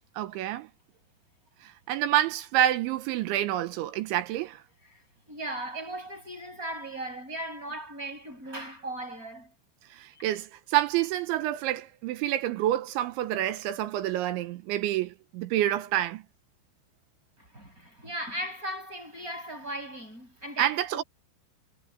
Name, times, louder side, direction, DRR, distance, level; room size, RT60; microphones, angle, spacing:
voice 1, 0.2-0.7 1.6-4.6 9.9-16.2 20.6-21.0, right 13 dB, 75° right, 3.2 m, -28 dB
voice 2, 5.3-9.5 10.1-10.2 17.4-21.0, right 1 dB, 15° right, 6.9 m, -37 dB
omnidirectional pair, 5.7 m